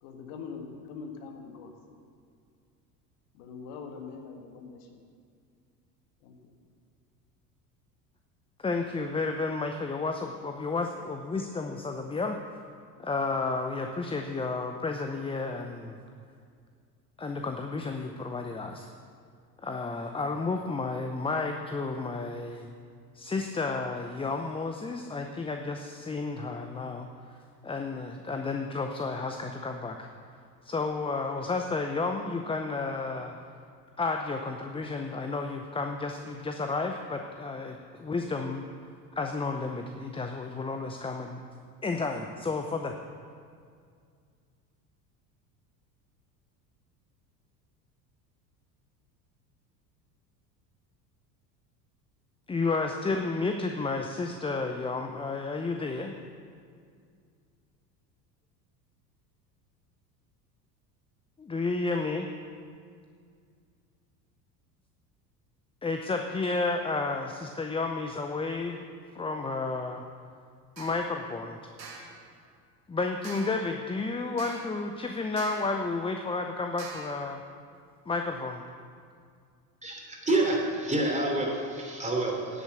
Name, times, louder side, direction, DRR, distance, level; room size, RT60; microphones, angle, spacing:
voice 1, 0.0-1.7 3.3-5.0 6.2-6.5, left 5 dB, 60° left, 3 dB, 1.7 m, -43 dB
voice 2, 8.6-12.4 13.0-16.0 17.2-18.9 19.6-22.7 23.1-27.1 27.6-30.1 30.6-33.4 34.0-38.6 39.2-41.4 41.8-43.0 52.5-56.1 61.4-62.3 65.8-68.8 69.1-70.0 70.8-71.7 72.9-77.4 78.1-78.6, left 3 dB, 10° left, 4 dB, 0.6 m, -32 dB
sound 1, 70.8-71.1 71.8-72.2 73.2-73.7 74.4-74.8 75.4-75.8 76.8-77.2, right 4 dB, 90° right, 1.7 m, -44 dB
voice 3, 79.8-82.6, right 2 dB, 15° right, -1 dB, 3.2 m, -28 dB
10.0 x 8.6 x 8.1 m, 2.2 s
hypercardioid pair, 75°, 49 cm